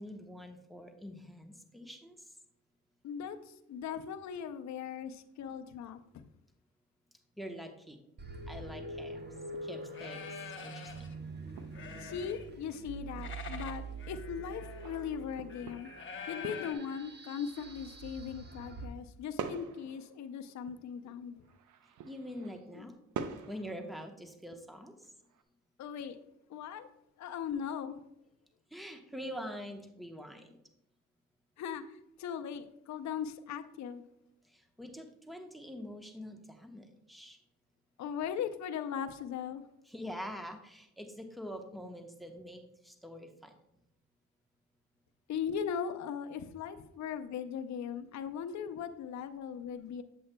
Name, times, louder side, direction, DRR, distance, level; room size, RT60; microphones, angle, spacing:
voice 1, 0.0-2.3 7.4-8.0 8.5-9.2 9.6-11.1 22.0-23.0 23.5-25.1 28.7-30.6 34.4-37.4 39.9-43.6, equal, ahead, 5 dB, 1.0 m, -45 dB
voice 2, 3.0-6.3 12.0-15.9 16.3-21.4 22.7-22.9 25.8-26.2 26.5-26.9 27.2-28.0 31.6-34.0 38.0-39.6 45.3-50.0, left 7 dB, 60° left, 7 dB, 0.6 m, -39 dB
sound 1, 8.2-18.9, right 3 dB, 35° right, 1.0 m, -45 dB
sound 2, 9.4-9.6 9.9-11.1 11.5-12.7 12.9-16.7, left 6 dB, 40° left, 0.9 m, -46 dB
sound 3, 11.4-12.1 12.5-12.9 14.8-17.2 17.5-18.6 19.4-21.1 21.4-22.8 23.1-24.0 24.5-24.6 25.0-25.4, right 6 dB, 70° right, 0.7 m, -46 dB
7.7 x 7.7 x 2.2 m, 0.83 s
cardioid pair, 75°, 32 cm